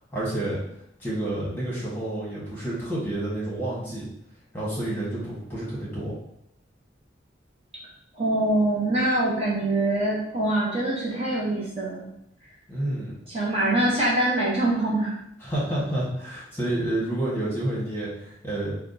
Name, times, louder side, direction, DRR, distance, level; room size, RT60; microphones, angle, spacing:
voice 1, 0.1-0.6 1.0-4.1 4.5-6.1 12.7-13.2 15.4-18.8, right 1 dB, 10° left, -7 dB, 1.3 m, -29 dB
voice 2, 8.2-12.1 13.3-15.1, right 1 dB, 30° right, -6 dB, 0.9 m, -24 dB
5.7 x 2.3 x 2.7 m, 0.77 s
head